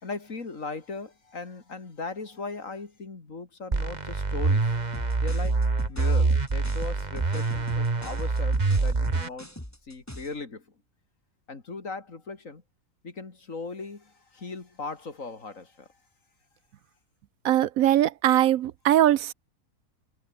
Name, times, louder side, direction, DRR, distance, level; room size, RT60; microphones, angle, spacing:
voice 1, 0.0-4.7 5.2-9.6 9.9-10.7 11.5-12.6 13.0-15.9, left 4 dB, 60° left, 3.2 m, -38 dB
sound 1, 3.7-9.3, right 3 dB, 30° right, 1.8 m, -25 dB
sound 2, 4.9-10.4, left 1 dB, 10° left, 4.0 m, -43 dB
voice 2, 17.4-19.3, right 12 dB, 75° right, 1.0 m, -21 dB
omnidirectional pair, 1.5 m